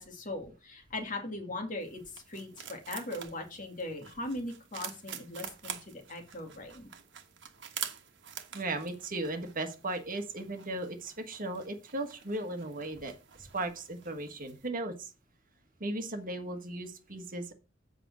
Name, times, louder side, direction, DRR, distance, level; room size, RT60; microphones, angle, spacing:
voice 1, 0.0-6.9, left 2 dB, 45° left, 3 dB, 2.4 m, -39 dB
sound 1, 1.8-14.7, right 9 dB, 65° right, 1.3 m, -47 dB
voice 2, 8.5-13.1 13.4-15.1 15.8-17.5, right 2 dB, 45° right, 7 dB, 1.5 m, -36 dB
8.0 x 5.1 x 6.1 m, 0.31 s
head